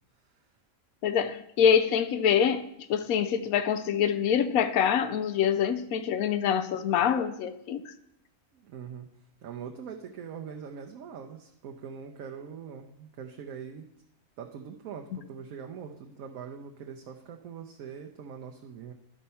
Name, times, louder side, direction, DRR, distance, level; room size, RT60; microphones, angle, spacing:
voice 1, 1.0-7.9, left 8 dB, 85° left, 1.1 m, -25 dB
voice 2, 8.5-9.1 9.4-13.9 14.4-18.9, right 7 dB, 75° right, 1.1 m, -42 dB
11.5 x 4.3 x 5.5 m
omnidirectional pair, 1.5 m